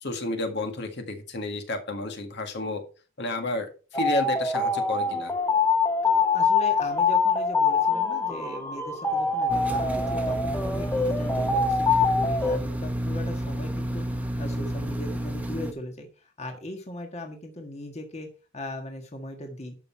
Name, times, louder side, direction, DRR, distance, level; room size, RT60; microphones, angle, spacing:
voice 1, 0.0-2.8 3.2-5.3, left 2 dB, 55° left, 5 dB, 1.9 m, -31 dB
sound 1, 3.9-12.6, left 4 dB, 10° left, 1.4 m, -24 dB
voice 2, 6.3-18.3 18.5-19.8, left 1 dB, 30° left, 3 dB, 1.6 m, -39 dB
sound 2, 9.5-15.7, right 1 dB, 5° right, 1.0 m, -30 dB
12.0 x 5.9 x 4.5 m, 0.35 s
head